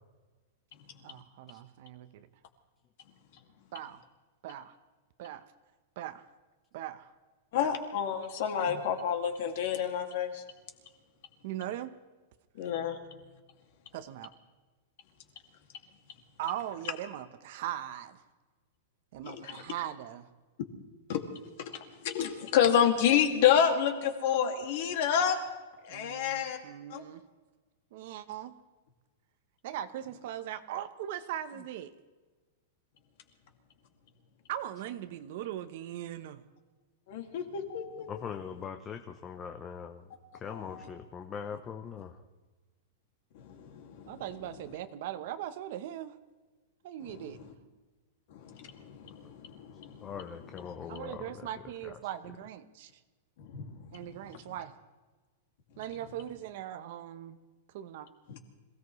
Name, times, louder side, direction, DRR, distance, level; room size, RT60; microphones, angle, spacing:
voice 1, 1.0-2.3 3.7-4.0 4.4-4.8 5.2-5.5 6.0-6.3 6.7-7.1 7.6-7.7 11.4-11.9 13.9-14.3 16.4-18.2 19.1-20.3 25.9-27.2 27.9-28.6 29.6-31.9 34.5-36.4 44.1-46.2 46.8-47.5 50.9-52.9 53.9-54.7 55.8-57.4 57.7-58.1, right 11 dB, 45° right, 12 dB, 0.9 m, -40 dB
voice 2, 7.5-10.4 12.5-13.0 19.3-19.6 21.1-21.2 21.6-25.4 25.8-26.6 26.9-27.0 37.1-38.1 40.5-40.9 43.3-44.2 47.0-47.5 48.3-50.1 50.9-51.0 53.4-54.4 58.3-58.4, left 8 dB, 50° left, 4 dB, 2.3 m, -29 dB
voice 3, 38.1-40.1 40.3-42.2 49.2-49.3 50.0-52.0, left 7 dB, 15° left, 6 dB, 0.6 m, -42 dB
26.5 x 17.0 x 3.2 m, 1.3 s
supercardioid pair, 175°, 0 cm